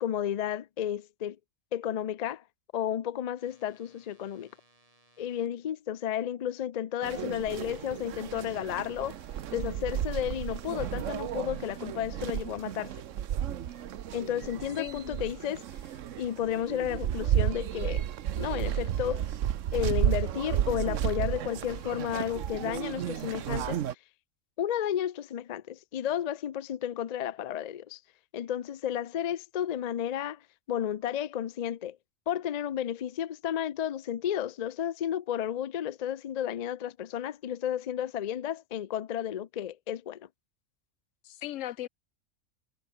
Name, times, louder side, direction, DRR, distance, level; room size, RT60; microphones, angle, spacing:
voice 1, 0.0-1.4 1.7-2.4 2.7-4.5 5.2-9.1 9.5-12.9 14.1-15.6 16.2-18.0 18.4-19.3 19.7-23.8 24.6-28.0 28.3-30.4 30.7-32.0 32.3-40.3, left 10 dB, 55° left, 0.4 m, -32 dB
sound 1, 3.4-5.5 7.7-11.9 13.7-13.9, right 1 dB, 25° right, 7.2 m, -65 dB
sound 2, 7.0-23.9, right 10 dB, 75° right, 1.1 m, -33 dB
voice 2, 14.8-15.3 41.2-41.9, left 14 dB, 80° left, 0.9 m, -38 dB
omnidirectional pair, 1.3 m